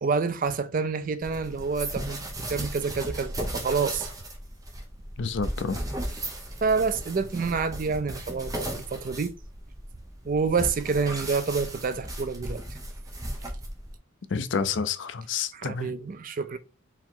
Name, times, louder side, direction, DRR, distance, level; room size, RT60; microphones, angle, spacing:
voice 1, 0.0-4.1 6.6-9.3 10.2-12.6 15.5-16.6, right 5 dB, 40° right, 0.4 m, -28 dB
sound 1, 1.2-14.0, right 1 dB, 15° right, 0.7 m, -36 dB
voice 2, 5.2-5.8 14.3-15.9, left 5 dB, 60° left, 0.4 m, -29 dB
4.6 x 2.9 x 3.7 m
head